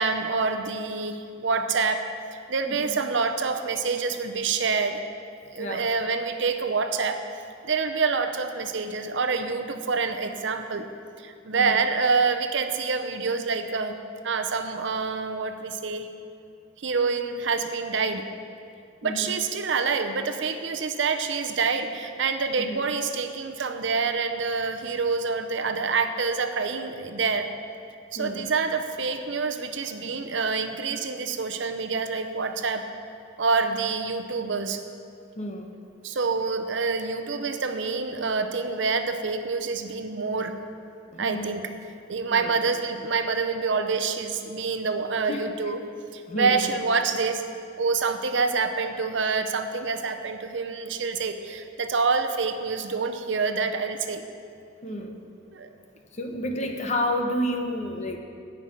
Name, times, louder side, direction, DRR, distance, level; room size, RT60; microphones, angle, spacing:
voice 1, 0.0-2.0 2.5-5.0 5.5-7.2 7.6-10.9 11.2-14.0 14.2-16.1 16.8-18.3 19.0-27.5 28.1-32.9 33.4-34.8 36.0-40.6 41.2-41.7 42.1-45.8 46.1-47.5 47.8-54.2 55.5-55.7, right 4 dB, 70° right, 7 dB, 0.7 m, -27 dB
voice 2, 2.7-3.0 5.6-5.9 11.5-11.8 19.0-19.3 22.6-22.9 28.2-28.5 35.4-35.7 41.1-41.5 42.3-42.5 45.3-45.4 46.3-46.7 54.8-55.2 56.1-58.2, left 1 dB, 35° left, 3 dB, 0.9 m, -30 dB
9.6 x 5.9 x 8.4 m, 2.4 s
head